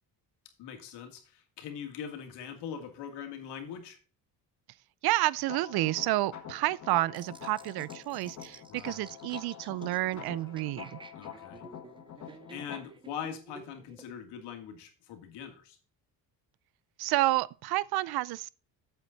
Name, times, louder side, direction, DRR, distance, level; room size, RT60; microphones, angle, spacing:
voice 1, 0.6-4.0 8.7-9.1 11.2-11.6 12.2-15.8, left 8 dB, 90° left, 2.6 m, -42 dB
voice 2, 5.0-11.0 17.0-18.5, right 17 dB, 70° right, 0.5 m, -30 dB
sound 1, 5.5-12.8, left 9 dB, 45° left, 1.7 m, -46 dB
sound 2, 7.1-14.1, right 4 dB, 15° right, 0.5 m, -53 dB
8.5 x 8.0 x 4.0 m
cardioid pair, 175°, 40 cm